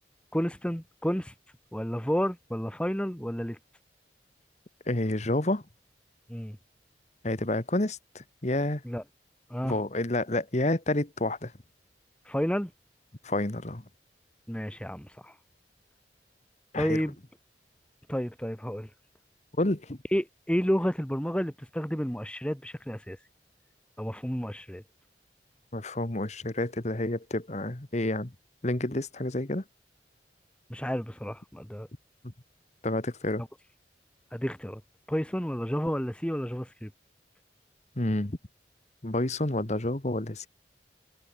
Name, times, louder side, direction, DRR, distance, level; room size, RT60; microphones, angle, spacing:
voice 1, 0.3-1.3 1.7-3.6 6.3-6.6 8.8-9.0 9.5-9.8 12.3-12.7 14.5-15.3 16.8-17.2 18.1-18.9 20.1-23.2 24.0-24.8 30.7-31.9 34.3-34.8 35.1-36.9, equal, 5° left, 1.8 m, -31 dB
voice 2, 4.9-5.6 7.2-8.8 9.6-11.5 13.2-13.8 16.7-17.0 19.6-20.0 25.7-28.3 28.6-29.6 32.8-33.4 38.0-38.4 39.0-40.5, left 1 dB, 40° left, 1.5 m, -29 dB
head